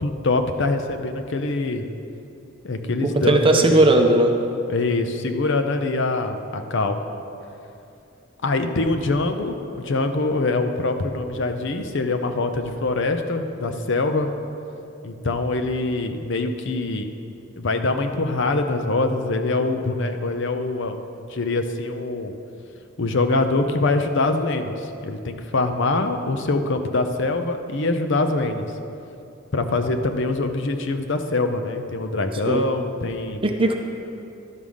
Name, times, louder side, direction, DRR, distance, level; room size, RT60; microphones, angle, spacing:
voice 1, 0.0-1.8 2.6-4.0 4.7-7.0 8.4-14.3 15.0-17.1 17.6-22.3 23.0-28.7 29.5-33.4, left 2 dB, 60° left, 7 dB, 0.7 m, -24 dB
voice 2, 3.0-4.3 32.5-32.6 33.4-33.7, right 2 dB, 25° right, 3 dB, 0.6 m, -17 dB
11.5 x 5.4 x 6.3 m, 2.7 s
head